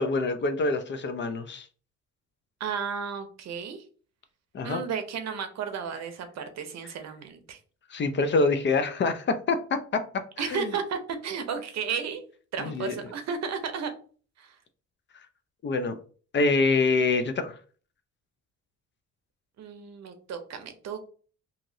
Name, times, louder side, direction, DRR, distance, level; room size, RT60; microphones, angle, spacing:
voice 1, 0.0-1.7 4.5-4.8 7.9-10.7 12.6-12.9 15.6-16.0 16.3-17.6, left 3 dB, 40° left, 0.4 m, -26 dB
voice 2, 2.6-3.8 4.6-7.6 10.4-12.2 12.5-13.9 14.4-14.6 19.6-21.1, right 6 dB, 60° right, 0.7 m, -33 dB
2.8 x 2.7 x 2.6 m
cardioid pair, 90°, 30 cm